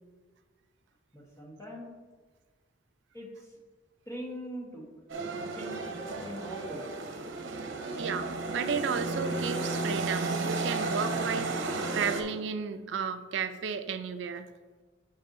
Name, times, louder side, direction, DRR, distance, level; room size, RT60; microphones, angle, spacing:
voice 1, 1.1-1.9 3.1-3.5 4.1-4.9 5.3-6.9, equal, 15° left, -2 dB, 1.2 m, -42 dB
sound 1, 5.1-12.2, right 3 dB, 90° right, 0.7 m, -33 dB
voice 2, 8.0-14.5, right 6 dB, 70° right, 9 dB, 0.4 m, -33 dB
8.1 x 5.4 x 2.6 m, 1.4 s
head